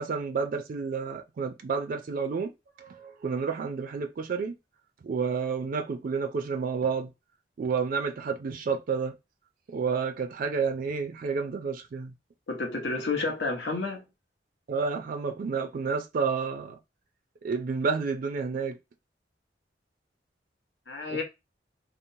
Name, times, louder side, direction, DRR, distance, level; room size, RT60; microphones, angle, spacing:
voice 1, 0.0-2.5 2.8-4.5 5.0-7.1 7.6-9.1 9.7-12.1 14.7-16.8 17.4-18.8, right 5 dB, 50° right, 0.3 m, -30 dB
voice 2, 12.5-14.0 20.9-21.2, left 3 dB, 80° left, 0.9 m, -30 dB
2.8 x 2.0 x 2.6 m
head